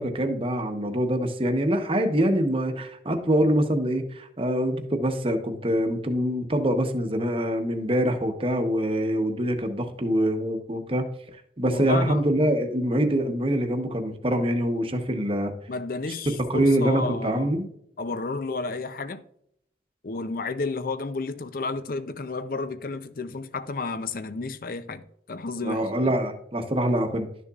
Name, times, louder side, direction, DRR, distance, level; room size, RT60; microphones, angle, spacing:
voice 1, 0.0-11.1 11.6-15.5 16.3-17.7 25.6-27.3, right 1 dB, 30° right, 1.0 m, -24 dB
voice 2, 11.7-12.2 15.7-17.6 18.0-19.2 20.0-25.0 25.3-26.2, left 3 dB, 50° left, 0.6 m, -32 dB
12.0 x 6.8 x 2.4 m
head